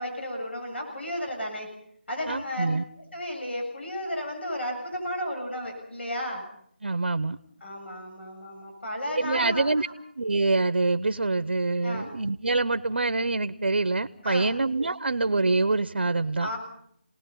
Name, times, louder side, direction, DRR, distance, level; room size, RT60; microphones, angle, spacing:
voice 1, 0.0-1.7 2.1-2.7 3.1-6.4 7.6-9.7 11.8-12.1 14.2-14.5 16.4-16.6, equal, 75° left, 2 dB, 7.8 m, -33 dB
voice 2, 2.3-2.8 6.8-7.4 9.2-9.9 10.2-16.5, right 3 dB, 70° right, 13 dB, 0.9 m, -25 dB
29.5 x 19.5 x 5.6 m, 0.68 s
figure-of-eight pair, 170°, 6 cm